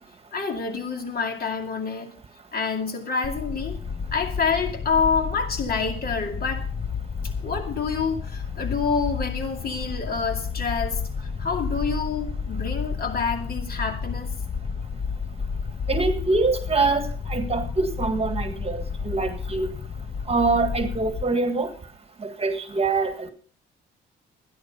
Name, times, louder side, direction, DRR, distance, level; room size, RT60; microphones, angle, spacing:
voice 1, 0.3-2.1 2.5-3.8 4.1-6.7 7.4-11.0 11.4-14.3, left 5 dB, 50° left, 3 dB, 2.4 m, -27 dB
sound 1, 3.2-21.2, left 5 dB, 30° left, 0.6 m, -31 dB
voice 2, 15.9-19.7 20.3-21.7 22.4-23.3, right 3 dB, 30° right, 9 dB, 1.8 m, -24 dB
13.5 x 10.5 x 5.4 m, 0.43 s
cardioid pair, 90°, 20 cm